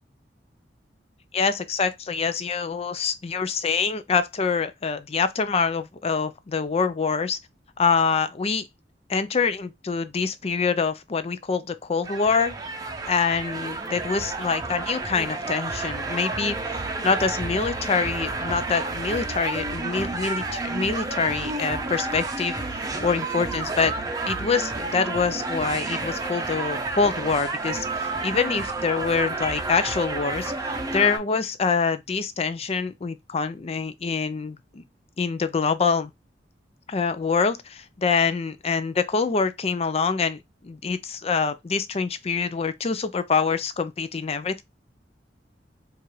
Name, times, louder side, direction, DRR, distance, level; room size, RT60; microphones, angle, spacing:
voice 1, 1.3-7.4 7.8-8.6 9.1-12.5 13.1-16.6 17.0-23.9 24.3-34.8 35.2-36.1 36.9-44.6, left 5 dB, 35° left, 0.5 m, -25 dB
sound 1, 12.0-31.2, right 3 dB, 20° right, 0.7 m, -30 dB
4.6 x 2.5 x 3.1 m
head